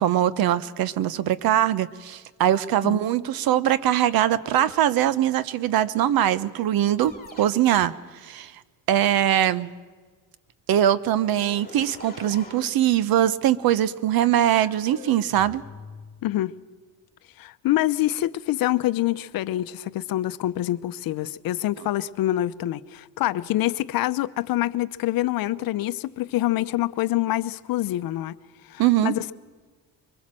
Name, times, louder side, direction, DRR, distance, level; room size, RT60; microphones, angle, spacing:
voice 1, 0.0-7.9 8.2-8.5 8.9-9.7 10.7-15.6 28.8-29.1, right 11 dB, 65° right, 1.0 m, -22 dB
sound 1, 4.4-4.9 7.0-8.0 11.0-12.8 14.6-16.3, left 4 dB, 25° left, 2.8 m, -44 dB
voice 2, 16.2-16.5 17.4-28.4 28.7-29.3, left 15 dB, 60° left, 0.8 m, -26 dB
23.5 x 21.5 x 7.6 m
cardioid pair, 125°, 40 cm